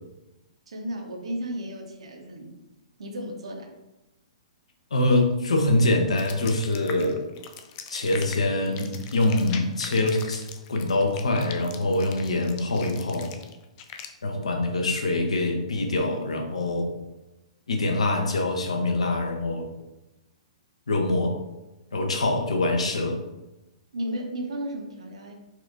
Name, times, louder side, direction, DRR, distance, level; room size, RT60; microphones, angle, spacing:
voice 1, 0.7-2.6 3.0-3.7 23.9-25.3, equal, 60° right, 3 dB, 0.7 m, -34 dB
voice 2, 4.9-7.2 7.9-10.4 10.7-13.3 14.2-16.9 17.7-19.7 20.9-21.4 21.9-23.2, left 2 dB, 65° left, 3 dB, 0.6 m, -24 dB
sound 1, 6.2-14.1, left 8 dB, 30° left, 0.3 m, -41 dB
4.3 x 2.5 x 2.6 m, 0.99 s
figure-of-eight pair, 115°, 4 cm